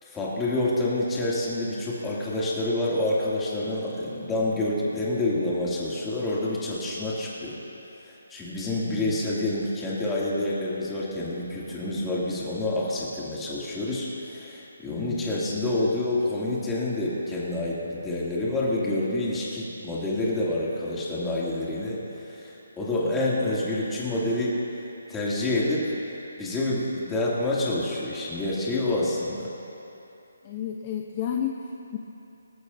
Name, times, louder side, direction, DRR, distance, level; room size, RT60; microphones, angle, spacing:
voice 1, 0.0-7.6 8.0-24.6 25.1-25.9 26.4-29.5, left 2 dB, 10° left, -7 dB, 2.6 m, -28 dB
voice 2, 8.8-9.1 14.9-15.4 23.0-23.2 30.4-32.0, left 8 dB, 30° left, 1 dB, 0.8 m, -33 dB
25.5 x 13.5 x 2.7 m, 2.9 s
hypercardioid pair, 160°, 0 cm